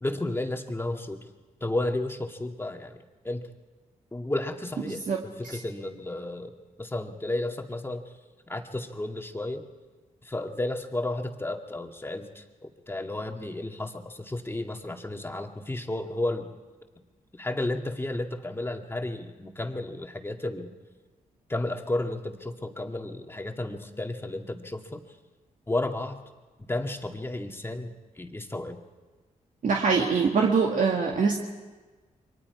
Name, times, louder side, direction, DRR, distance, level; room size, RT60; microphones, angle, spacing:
voice 1, 0.0-1.2 1.6-3.0 3.2-3.5 4.1-8.0 8.5-9.6 10.3-16.5 17.4-20.7 21.5-25.0 25.7-26.2 26.6-28.8, left 2 dB, 15° left, 3 dB, 2.0 m, -32 dB
voice 2, 4.9-5.6 29.6-31.4, right 5 dB, 65° right, -1 dB, 2.1 m, -24 dB
28.5 x 23.5 x 4.9 m, 1.3 s
cardioid pair, 80°, 14 cm